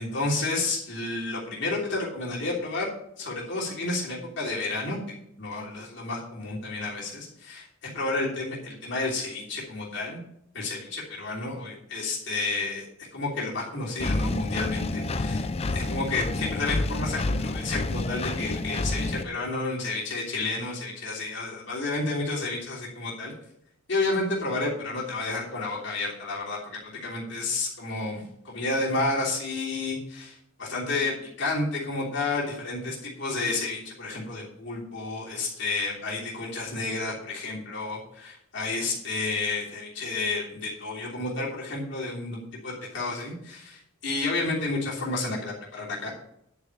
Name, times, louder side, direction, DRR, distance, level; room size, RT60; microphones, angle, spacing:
voice 1, 0.0-2.9 3.2-5.0 5.4-10.2 10.5-12.9 13.1-15.5 15.7-23.3 23.9-46.1, left 3 dB, 65° left, -5 dB, 3.1 m, -31 dB
Engine, 14.0-19.2, left 2 dB, 30° left, 0.5 m, -29 dB
10.5 x 5.0 x 8.1 m, 0.76 s
head